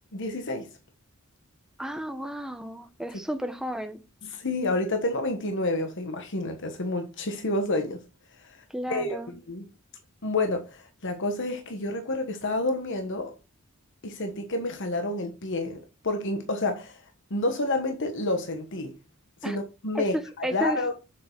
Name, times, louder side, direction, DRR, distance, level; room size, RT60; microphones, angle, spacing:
voice 1, 0.1-0.7 3.1-3.2 4.2-8.0 8.4-9.7 10.2-13.3 14.0-17.0 17.3-19.0 19.4-20.9, left 2 dB, 60° left, 1.2 m, -29 dB
voice 2, 1.8-4.0 8.7-9.3 19.4-19.6 19.9-20.8, equal, 5° right, 1.0 m, -32 dB
7.5 x 6.9 x 4.5 m
head